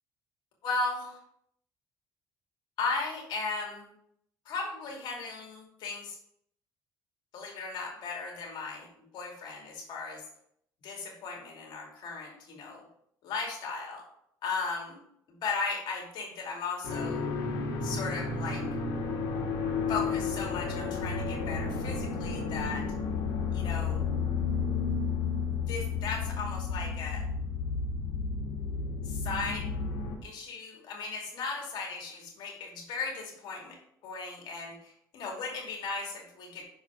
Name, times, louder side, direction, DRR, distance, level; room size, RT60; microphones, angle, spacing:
voice 1, 0.6-1.2 2.8-3.9 4.4-6.2 7.3-10.2 10.8-12.8 13.2-14.0 14.4-15.0 15.3-17.2 17.8-18.6 19.9-22.9 23.5-24.0 25.5-27.2 29.0-29.7 30.2-33.8 34.0-36.6, left 4 dB, 70° left, 0 dB, 2.5 m, -36 dB
sound 1, 16.8-30.1, left 5 dB, 85° left, 1.8 m, -32 dB
6.2 x 4.8 x 4.7 m, 0.71 s
cardioid pair, 105°, 8 cm